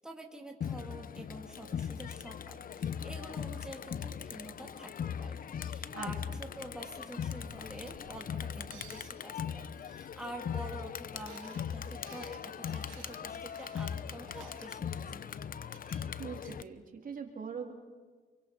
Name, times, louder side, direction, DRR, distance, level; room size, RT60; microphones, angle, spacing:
voice 1, 0.0-4.9 5.2-15.4, right 1 dB, 5° right, 1 dB, 3.0 m, -47 dB
Crowd, 0.6-16.6, left 7 dB, 45° left, 0.8 m, -39 dB
voice 2, 5.9-6.4 16.2-17.7, right 6 dB, 45° right, 2 dB, 3.4 m, -42 dB
sound 1, 7.0-7.3 7.8-8.0 8.6-9.4 9.9-10.0 10.2-10.8 11.1-14.7 15.7-16.6, right 10 dB, 85° right, 2.8 m, -57 dB
27.5 x 24.0 x 5.4 m, 1.4 s
cardioid pair, 90°, 20 cm